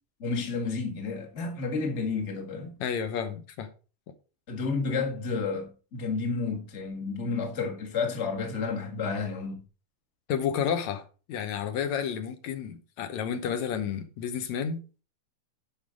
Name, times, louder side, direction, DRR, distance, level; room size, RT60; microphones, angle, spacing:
voice 1, 0.2-2.7 4.5-9.6, left 4 dB, 30° left, 1.3 m, -31 dB
voice 2, 2.8-3.7 10.3-11.0 11.3-14.8, left 8 dB, 65° left, 2.1 m, -31 dB
11.5 x 5.9 x 3.8 m
omnidirectional pair, 3.9 m